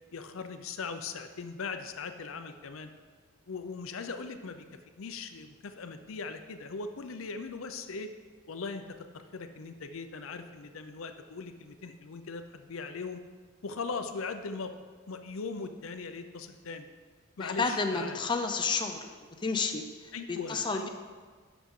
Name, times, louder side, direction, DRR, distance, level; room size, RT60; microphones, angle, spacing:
voice 1, 0.1-2.9 3.5-4.6 5.0-8.1 8.5-13.2 13.6-16.9 17.4-18.2 20.1-20.9, left 4 dB, 70° left, 8 dB, 0.6 m, -39 dB
voice 2, 17.4-19.1 19.4-20.9, left 4 dB, 20° left, 5 dB, 0.5 m, -31 dB
11.5 x 6.1 x 3.7 m, 1.5 s
head